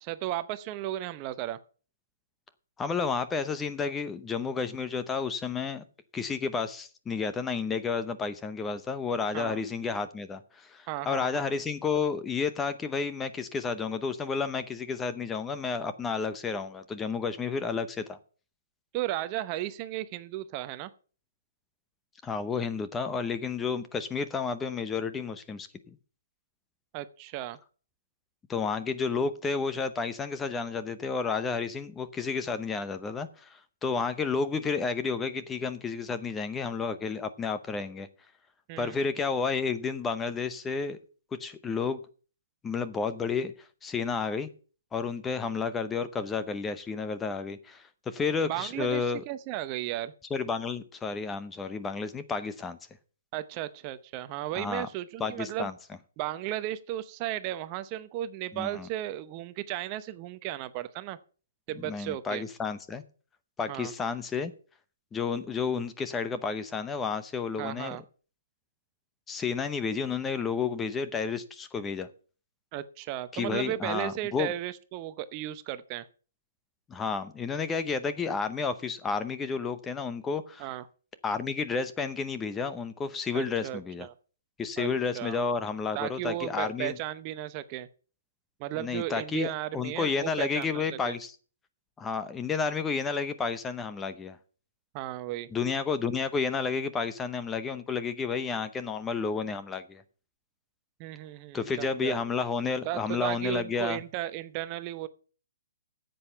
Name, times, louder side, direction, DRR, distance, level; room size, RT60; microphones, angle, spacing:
voice 1, 0.0-1.6 9.3-9.6 10.9-11.5 18.9-20.9 26.9-27.6 38.7-39.0 48.4-50.1 53.3-55.7 56.2-61.2 61.7-62.4 63.7-63.9 67.6-68.0 72.7-76.1 80.6-80.8 83.3-84.1 84.8-84.9 85.1-85.4 85.9-87.9 88.6-91.2 94.9-95.5 101.0-102.2 102.8-105.1, right 14 dB, 30° right, 0.7 m, -35 dB
voice 2, 2.8-5.8 6.1-18.2 22.2-26.0 28.5-38.1 38.8-41.0 41.4-42.0 42.6-43.5 43.8-44.5 44.9-49.2 50.3-52.8 54.5-54.9 55.2-55.7 58.5-58.9 61.8-63.0 63.6-64.5 65.1-68.0 69.3-72.1 73.3-74.5 76.9-80.7 81.2-84.1 84.6-87.0 88.8-91.3 92.0-94.4 95.5-100.0 101.5-104.0, left 5 dB, 10° left, 0.7 m, -31 dB
9.6 x 7.8 x 6.7 m
hypercardioid pair, 145°, 0 cm